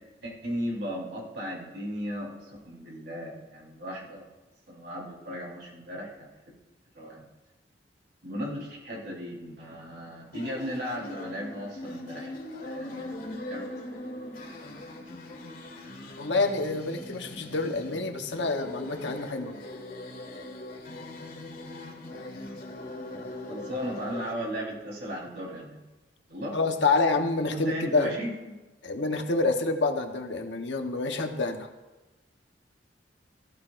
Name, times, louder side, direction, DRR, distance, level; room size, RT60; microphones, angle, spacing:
voice 1, 0.2-4.3 4.7-6.3 6.9-7.2 8.2-12.3 12.8-14.3 23.5-25.8 26.3-26.6 27.5-28.6, equal, 65° right, -3 dB, 4.3 m, -36 dB
sound 1, 10.3-24.3, left 1 dB, 50° left, 2.0 m, -41 dB
voice 2, 16.2-19.5 26.5-28.1 28.8-31.7, left 3 dB, 80° left, 4 dB, 1.2 m, -27 dB
17.5 x 14.5 x 2.6 m, 1.1 s
head